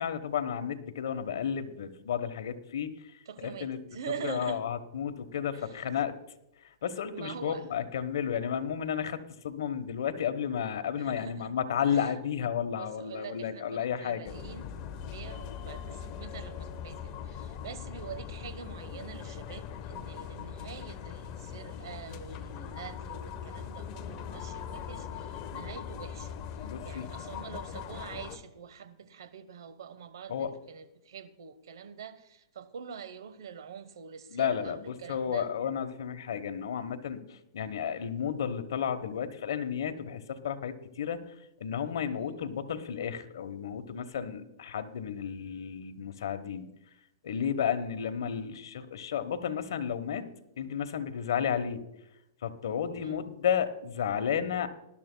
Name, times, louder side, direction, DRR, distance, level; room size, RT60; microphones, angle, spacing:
voice 1, 0.0-2.9 3.6-3.8 4.2-6.1 6.8-14.3 26.6-27.1 30.3-30.5 34.3-34.8 35.1-41.3 41.6-46.7 47.2-50.2 50.6-51.8 52.4-54.7, left 8 dB, 75° left, 1.1 m, -32 dB
voice 2, 3.3-4.6 5.5-5.8 7.1-7.7 11.0-11.5 11.8-12.1 12.6-14.7 15.0-35.5 42.1-42.5 52.9-53.2, right 7 dB, 80° right, 0.9 m, -45 dB
sound 1, 14.3-28.4, left 8 dB, 35° left, 1.0 m, -41 dB
19.5 x 11.5 x 2.2 m
hypercardioid pair, 145°, 2 cm